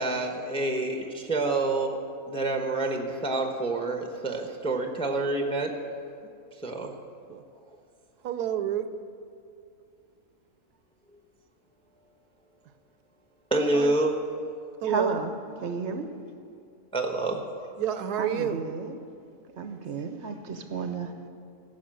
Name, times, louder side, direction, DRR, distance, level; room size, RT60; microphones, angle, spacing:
voice 1, 0.0-2.0 2.3-5.7 6.6-6.9 13.5-14.1 16.9-17.4, right 2 dB, 5° left, 3 dB, 0.8 m, -27 dB
voice 2, 8.2-8.9 13.7-13.9 14.8-15.1 17.8-18.6, right 10 dB, 80° right, 11 dB, 1.2 m, -29 dB
voice 3, 14.8-15.3 15.6-16.1 18.2-18.9 19.6-21.3, right 4 dB, 55° right, 7 dB, 0.9 m, -32 dB
15.5 x 6.1 x 7.6 m, 2.5 s
omnidirectional pair, 1.7 m